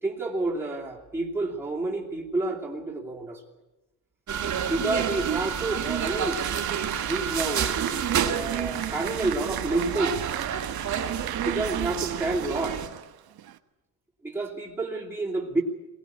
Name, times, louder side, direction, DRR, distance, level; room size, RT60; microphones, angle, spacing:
voice 1, 0.0-3.4 4.7-6.6 7.1-7.8 8.2-10.3 11.4-12.8 14.2-15.6, right 2 dB, 5° right, -3 dB, 2.7 m, -29 dB
sound 1, 4.3-12.9, right 8 dB, 50° right, 2.2 m, -29 dB
Applause, 5.5-13.6, right 12 dB, 70° right, 1.2 m, -37 dB
22.0 x 19.0 x 9.8 m, 1.1 s
cardioid pair, 170°, 38 cm